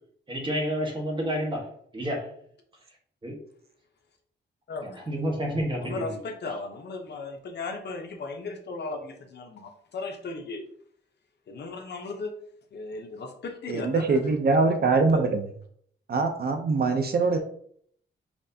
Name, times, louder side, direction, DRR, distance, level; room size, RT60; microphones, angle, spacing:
voice 1, 0.3-2.3 3.2-3.4 5.1-6.2, equal, 25° right, 0 dB, 1.4 m, -29 dB
voice 2, 4.7-5.1 5.8-10.7 11.5-12.3 12.7-14.4 15.1-15.2, left 3 dB, 60° left, 4 dB, 0.9 m, -36 dB
voice 3, 13.7-15.5 16.1-17.4, right 3 dB, 55° right, 5 dB, 0.6 m, -23 dB
5.9 x 3.3 x 2.7 m, 0.62 s
wide cardioid pair, 115°, 20 cm